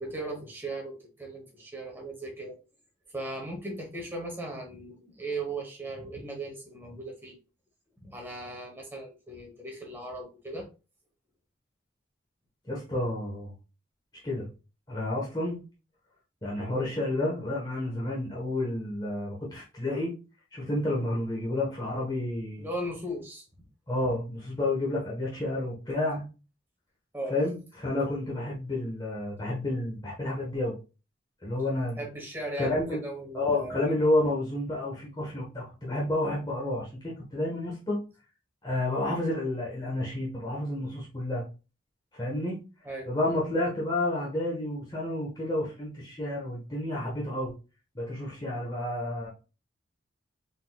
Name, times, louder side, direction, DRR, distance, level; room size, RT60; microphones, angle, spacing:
voice 1, 0.0-2.6 3.1-7.4 8.0-10.7 22.6-23.4 27.1-27.4 32.0-34.0 42.8-43.1, right 2 dB, 10° right, 0 dB, 1.1 m, -37 dB
voice 2, 12.7-13.5 14.2-14.5 14.9-15.6 16.4-20.1 20.5-22.6 23.9-26.2 27.3-30.7 31.4-32.0 32.6-33.0 33.3-38.0 38.6-41.4 42.1-42.6 43.1-47.5 47.9-49.3, left 1 dB, 20° left, -5 dB, 1.1 m, -30 dB
4.0 x 3.8 x 2.3 m, 0.31 s
head